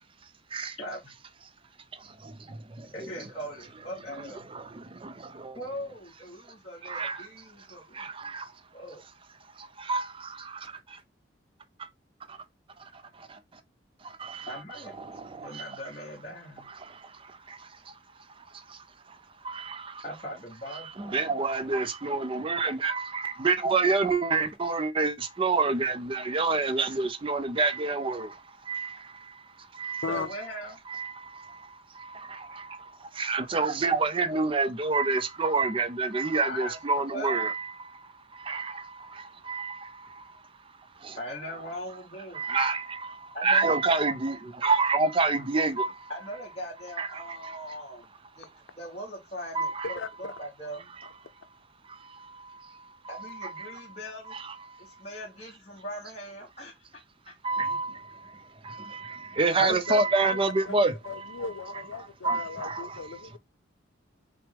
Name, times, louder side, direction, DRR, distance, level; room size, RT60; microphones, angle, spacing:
voice 1, 0.8-1.1 2.9-4.5 5.5-8.1 8.7-9.0 14.5-14.9 15.4-16.7 20.0-21.2 30.1-30.8 36.4-37.6 41.2-42.5 43.3-43.8 46.1-48.0 48.4-48.5 48.7-50.9 53.1-54.4 54.8-56.8, equal, 35° left, 1.2 m, -40 dB
voice 2, 1.9-2.9 4.2-5.6 6.8-7.3 7.7-8.5 9.6-11.0 11.8-11.9 12.3-12.4 12.8-13.4 14.0-14.5 15.0-15.6 16.7-17.7 18.4-19.2 19.4-20.0 20.7-30.2 30.9-40.4 41.0-41.2 42.3-46.1 47.0-47.8 49.5-50.0 51.0-51.1 51.9-53.8 54.3-55.0 57.4-61.4 62.2-63.2, right 3 dB, 30° right, 0.5 m, -29 dB
voice 3, 59.6-60.8 61.1-63.4, left 5 dB, 90° left, 0.6 m, -36 dB
5.8 x 2.2 x 3.4 m
head